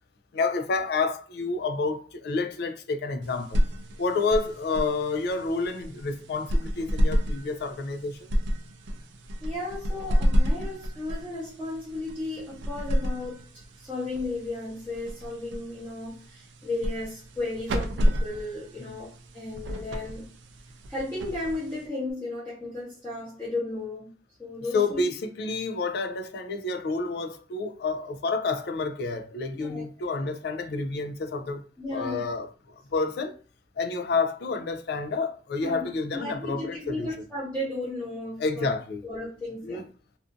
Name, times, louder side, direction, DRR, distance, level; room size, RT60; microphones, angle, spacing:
voice 1, 0.3-3.6 4.0-8.3 18.9-19.0 24.7-31.6 31.9-32.5 32.9-33.3 33.8-37.1 38.4-39.0 39.6-39.8, left 3 dB, 60° left, 0.3 m, -29 dB
sound 1, 3.2-22.1, equal, 75° right, 0.4 m, -30 dB
voice 2, 9.4-13.5 13.8-20.3 20.9-24.1 24.4-25.0 29.5-29.8 30.2-30.3 31.8-32.2 35.6-35.8 36.1-38.7 39.0-39.9, left 2 dB, 10° left, 0.7 m, -34 dB
2.5 x 2.4 x 2.5 m
head